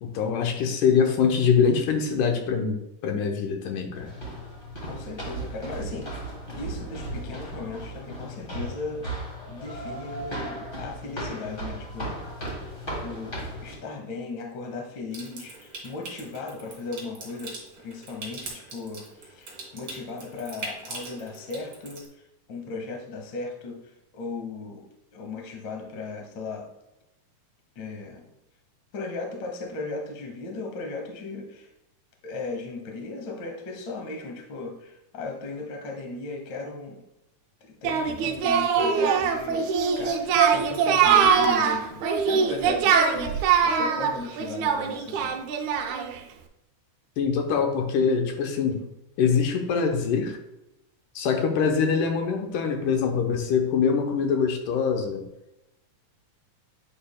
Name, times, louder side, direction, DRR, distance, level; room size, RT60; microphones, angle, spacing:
voice 1, 0.0-4.1 47.2-48.9 49.2-50.4 51.2-55.2, left 6 dB, 85° left, 4 dB, 2.4 m, -24 dB
sound 1, 3.9-13.8, right 1 dB, 40° left, 0.8 m, -36 dB
voice 2, 4.8-6.2 6.5-9.1 9.5-12.2 13.0-22.1 22.5-23.8 24.1-24.8 25.1-26.7 27.7-28.2 28.9-31.7 32.2-37.0 37.6-45.4, left 3 dB, 65° left, 2 dB, 1.2 m, -37 dB
Water tap faucet / Sink (filling or washing) / Trickle dribble, 15.1-22.1, right 2 dB, 40° right, 1.9 m, -42 dB
Singing, 37.8-46.2, right 6 dB, 80° right, 1.7 m, -22 dB
8.6 x 5.5 x 2.3 m, 0.90 s
omnidirectional pair, 3.6 m